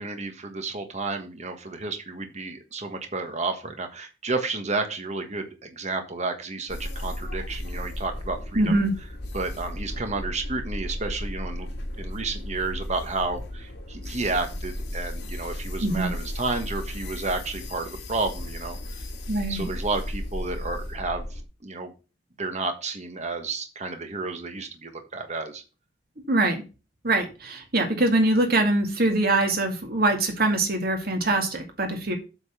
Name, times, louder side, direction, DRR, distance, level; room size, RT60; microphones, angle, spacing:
voice 1, 0.0-8.8 9.3-11.7 11.9-18.8 19.5-21.9 22.4-25.6, right 3 dB, 40° right, 6 dB, 1.4 m, -31 dB
sound 1, 6.7-21.4, left 1 dB, 85° left, 2.0 m, -35 dB
voice 2, 8.5-8.9 15.8-16.1 19.3-19.7 26.3-26.6 27.0-32.2, right 2 dB, 60° right, 4 dB, 2.1 m, -23 dB
8.2 x 4.1 x 7.0 m, 0.31 s
head